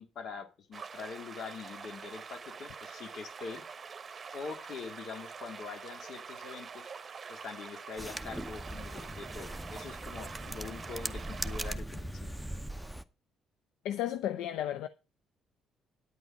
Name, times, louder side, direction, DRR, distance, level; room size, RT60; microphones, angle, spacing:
voice 1, 0.0-3.6 4.3-6.9 7.3-12.4, left 5 dB, 65° left, 2.0 m, -44 dB
sound 1, 0.7-11.8, right 6 dB, 40° right, 0.9 m, -46 dB
sound 2, 8.0-13.0, right 1 dB, ahead, 0.7 m, -40 dB
voice 2, 13.8-14.9, left 11 dB, 85° left, 0.5 m, -33 dB
9.6 x 8.3 x 5.2 m
cardioid pair, 85°, 0 cm